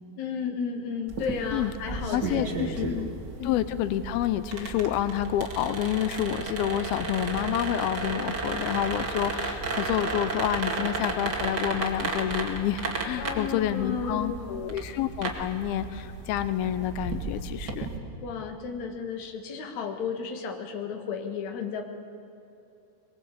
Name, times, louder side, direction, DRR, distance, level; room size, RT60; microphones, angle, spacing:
voice 1, 0.2-2.5 2.8-3.1 3.4-3.5 13.2-14.8 18.2-21.8, left 6 dB, 55° left, 4 dB, 2.8 m, -33 dB
sound 1, 1.1-18.0, right 3 dB, 35° right, 2.1 m, -34 dB
voice 2, 1.5-2.9 3.4-17.9, left 11 dB, 90° left, 12 dB, 2.7 m, -29 dB
22.5 x 21.0 x 8.4 m, 2.9 s
omnidirectional pair, 4.2 m